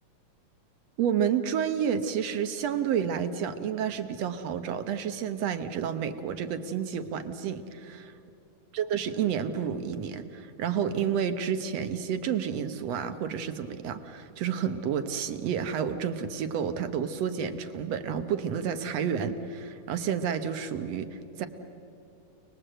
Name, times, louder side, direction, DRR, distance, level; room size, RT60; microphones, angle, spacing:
voice 1, 1.0-8.1 8.7-21.5, right 8 dB, 65° right, 9 dB, 1.9 m, -30 dB
30.0 x 20.5 x 7.9 m, 2.7 s
omnidirectional pair, 3.7 m